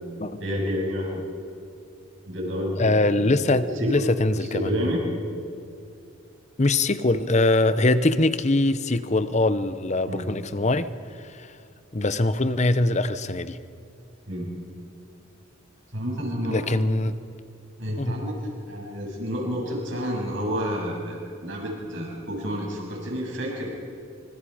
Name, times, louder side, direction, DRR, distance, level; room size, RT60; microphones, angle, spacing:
voice 1, 0.4-1.2 2.3-4.0 4.4-5.0 10.1-10.3 14.3-14.5 15.9-16.7 17.8-18.4 18.7-23.7, equal, 60° right, 7.9 m, -30 dB
voice 2, 2.8-5.0 6.6-10.9 11.2-11.5 11.9-13.6 16.5-17.2 18.0-18.2, left 2 dB, 35° left, 0.8 m, -23 dB
26.0 x 26.0 x 5.0 m
head